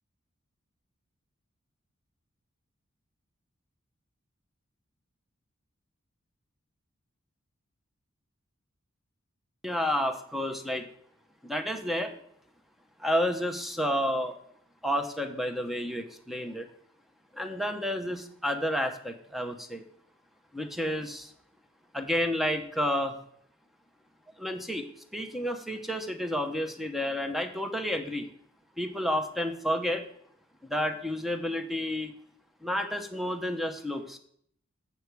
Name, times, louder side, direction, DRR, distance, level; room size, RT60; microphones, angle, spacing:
voice 1, 9.6-10.9 11.4-12.1 13.0-14.3 14.8-16.7 17.3-19.8 20.5-21.3 21.9-23.2 24.4-24.8 25.1-28.2 28.8-30.0 30.7-32.1 32.6-34.2, equal, ahead, 6 dB, 0.8 m, -30 dB
8.2 x 6.7 x 4.6 m, 0.65 s
head